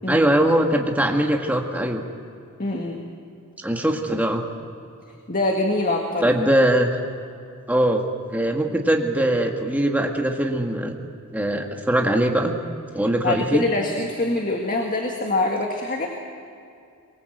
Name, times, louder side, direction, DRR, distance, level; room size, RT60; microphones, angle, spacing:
voice 1, 0.1-2.0 3.6-4.4 6.2-7.0 7.7-8.0 8.3-11.0 11.3-12.6 12.9-13.6, right 1 dB, 5° right, 2 dB, 1.9 m, -21 dB
voice 2, 2.6-3.0 5.3-6.3 13.2-16.1, left 2 dB, 40° left, 1 dB, 2.0 m, -24 dB
23.5 x 23.0 x 7.9 m, 2.5 s
head